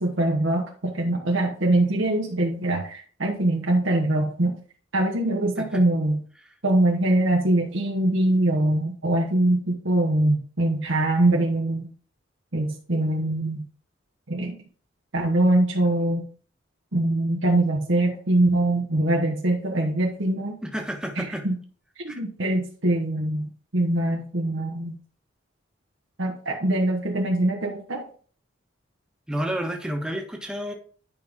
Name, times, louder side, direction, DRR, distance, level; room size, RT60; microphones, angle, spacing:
voice 1, 0.0-4.6 4.9-6.2 6.6-11.9 12.5-13.7 14.3-14.6 15.1-16.2 16.9-20.6 21.1-21.6 22.0-24.9 26.2-28.0, right 1 dB, 75° right, 0 dB, 1.3 m, -23 dB
voice 2, 20.6-21.5 22.1-22.2 29.3-30.7, equal, 5° right, 2 dB, 1.3 m, -30 dB
10.0 x 5.4 x 3.6 m, 0.43 s
head